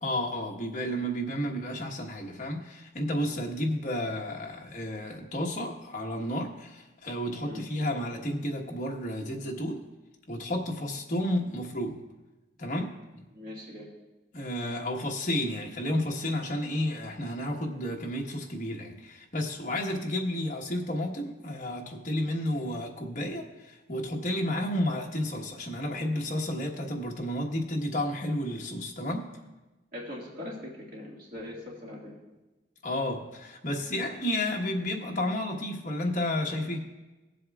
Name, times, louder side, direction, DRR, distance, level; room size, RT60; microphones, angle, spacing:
voice 1, 0.0-9.8 10.3-12.0 12.6-13.2 14.3-29.3 32.8-36.8, left 1 dB, 45° left, 0 dB, 1.3 m, -31 dB
voice 2, 13.3-13.9 29.9-32.2, left 1 dB, 50° right, -4 dB, 1.9 m, -41 dB
19.0 x 7.6 x 2.4 m, 1.1 s
head